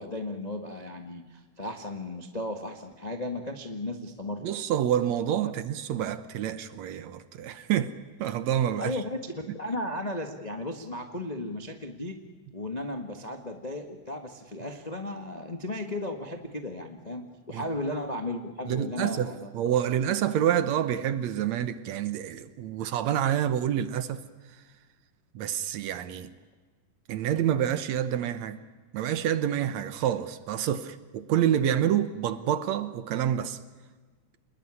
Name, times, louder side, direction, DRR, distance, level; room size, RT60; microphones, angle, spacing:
voice 1, 0.0-4.5 8.8-12.2 12.5-19.8, left 1 dB, 55° left, 0.4 m, -35 dB
voice 2, 4.4-7.9 8.2-9.0 17.5-17.7 18.7-24.2 25.4-26.3 27.1-28.6 28.9-33.6, right 10 dB, 70° right, 2.0 m, -28 dB
27.5 x 20.5 x 9.8 m
omnidirectional pair, 3.7 m